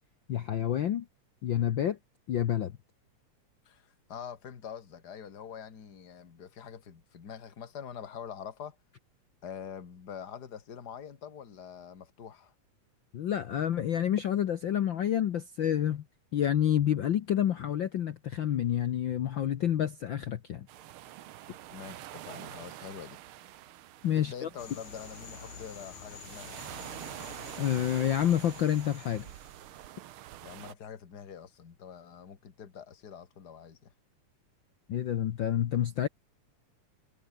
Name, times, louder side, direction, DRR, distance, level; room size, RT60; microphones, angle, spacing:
voice 1, 0.3-1.1 1.4-2.0 2.3-2.7 13.1-16.0 16.3-20.7 24.0-24.5 27.6-29.3 34.9-36.1, left 10 dB, 65° left, 1.2 m, -28 dB
voice 2, 3.7-8.8 9.4-12.5 21.7-23.2 24.1-26.6 30.4-33.9, left 8 dB, 35° left, 2.2 m, -45 dB
sound 1, 20.7-30.7, right 14 dB, 75° right, 1.2 m, -46 dB
sound 2, 24.6-29.9, left 7 dB, 85° left, 4.1 m, -49 dB
omnidirectional pair, 3.3 m